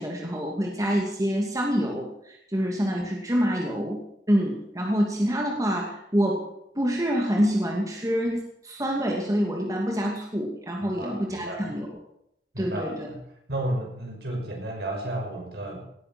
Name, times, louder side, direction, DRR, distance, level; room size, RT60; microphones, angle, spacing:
voice 1, 0.0-4.0 4.3-6.5 6.8-11.9 12.6-13.1, equal, 20° right, 0 dB, 2.4 m, -26 dB
voice 2, 10.8-11.8 12.5-13.2 13.5-15.8, right 1 dB, 65° right, 1 dB, 6.2 m, -33 dB
18.5 x 10.0 x 7.6 m, 0.75 s
head